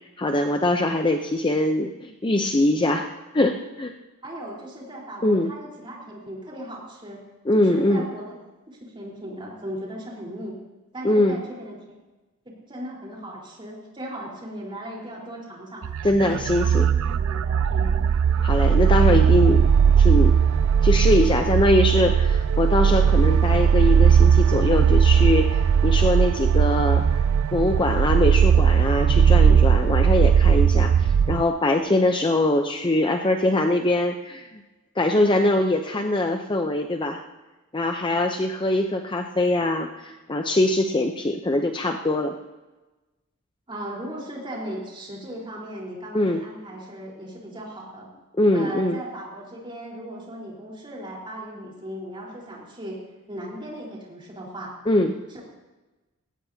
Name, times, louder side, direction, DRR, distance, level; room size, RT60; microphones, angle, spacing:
voice 1, 0.2-3.1 3.3-3.9 5.2-5.5 7.5-8.1 11.0-11.4 16.0-16.9 18.4-19.7 20.0-20.4 20.8-27.0 27.5-34.6 35.0-37.2 37.7-42.3 46.1-46.4 48.4-49.0 54.9-55.1, left 1 dB, 20° left, 4 dB, 0.7 m, -22 dB
voice 2, 4.2-7.2 7.5-8.3 8.7-10.5 10.9-11.8 12.4-15.8 16.2-18.1 43.7-48.1 48.5-53.0 53.3-54.7 55.3-55.4, right 1 dB, 25° right, -3 dB, 4.1 m, -37 dB
sound 1, 15.8-31.4, right 7 dB, 60° right, 0.3 m, -18 dB
19.0 x 16.5 x 2.8 m, 1.1 s
head